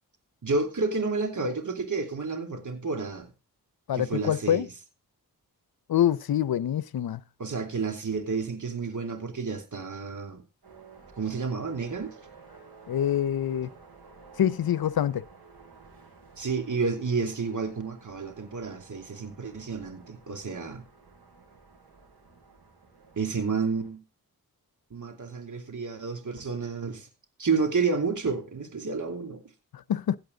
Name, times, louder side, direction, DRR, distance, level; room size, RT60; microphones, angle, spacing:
voice 1, 0.4-3.3 3.9-4.7 7.4-10.4 11.2-12.1 16.4-20.8 23.2-24.0 24.9-27.1 27.4-29.4, right 4 dB, 55° right, 2.9 m, -30 dB
voice 2, 3.9-4.7 5.9-7.2 12.9-13.7 14.4-15.2 29.7-30.2, left 10 dB, 75° left, 0.7 m, -25 dB
sound 1, 10.6-23.9, right 4 dB, 80° right, 6.9 m, -53 dB
16.5 x 8.5 x 3.9 m
cardioid pair, 50°, 37 cm